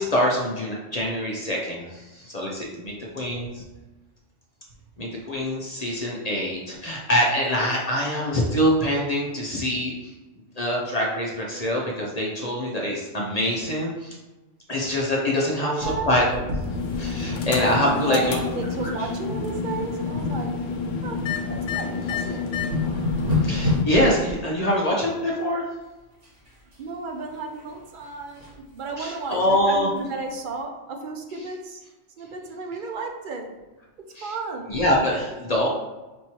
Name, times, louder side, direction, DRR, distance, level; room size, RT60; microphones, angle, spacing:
voice 1, 0.0-3.6 5.0-9.9 10.6-14.2 14.7-16.4 17.0-18.4 19.0-19.1 23.4-25.6 29.0-29.9 34.1-34.3 34.7-35.7, left 1 dB, 40° left, -3 dB, 0.6 m, -24 dB
voice 2, 15.6-16.2 17.9-20.5 21.0-22.6 26.8-31.8 32.2-33.5 34.2-34.8, right 3 dB, 55° right, 3 dB, 0.6 m, -33 dB
sound 1, 15.8-18.2 18.4-18.6 19.1-19.5 19.8-21.7 22.1-22.2 22.5-24.4 26.2-26.8 27.1-28.6 29.0-29.1 29.4-29.5 30.0-30.1, left 2 dB, 70° right, 1.6 m, -30 dB
sound 2, 16.5-23.8, left 4 dB, 75° left, 0.9 m, -29 dB
5.3 x 3.0 x 2.8 m, 1.1 s
omnidirectional pair, 1.3 m